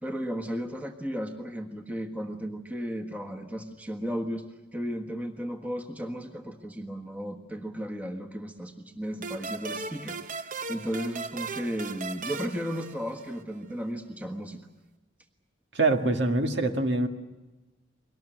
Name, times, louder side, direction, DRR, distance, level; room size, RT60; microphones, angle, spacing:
voice 1, 0.0-4.4 4.7-14.6, equal, 10° right, 4 dB, 1.5 m, -35 dB
sound 1, 9.2-13.6, right 4 dB, 45° right, 0.8 m, -37 dB
voice 2, 15.7-17.1, right 2 dB, 70° right, 5 dB, 1.9 m, -24 dB
23.0 x 19.0 x 9.1 m, 1.1 s
head